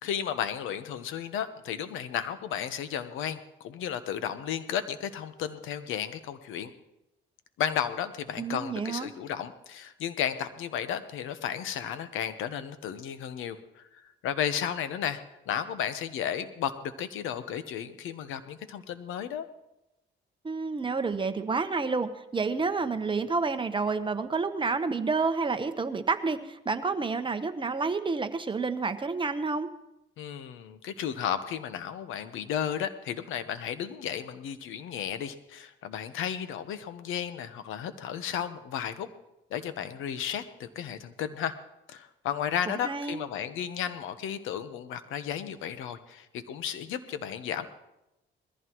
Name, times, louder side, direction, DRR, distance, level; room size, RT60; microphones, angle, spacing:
voice 1, 0.0-6.7 7.6-13.8 14.2-15.2 15.5-19.5 30.2-39.1 39.5-41.5 41.9-47.7, left 9 dB, 90° left, 11 dB, 1.0 m, -33 dB
voice 2, 8.4-9.1 20.4-29.7 42.7-43.2, right 4 dB, 25° right, 8 dB, 1.0 m, -29 dB
21.0 x 14.5 x 3.1 m, 0.93 s
cardioid pair, 90°, 20 cm